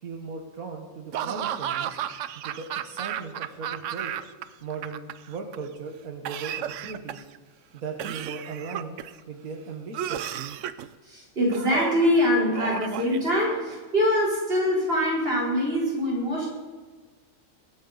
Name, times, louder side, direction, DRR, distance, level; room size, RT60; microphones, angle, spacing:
voice 1, 0.0-2.0 2.3-4.1 4.6-7.2 7.7-9.0 9.3-10.4, right 4 dB, 90° right, 3 dB, 1.8 m, -38 dB
Laughter / Cough, 1.1-4.4 4.7-5.6 6.3-7.4 8.0-9.2 9.9-10.9 11.5-12.1 12.5-13.7, right 10 dB, 70° right, 0.9 m, -33 dB
voice 2, 11.0-16.5, equal, 45° right, -4 dB, 4.2 m, -24 dB
23.5 x 9.1 x 4.0 m, 1.4 s
omnidirectional pair, 1.4 m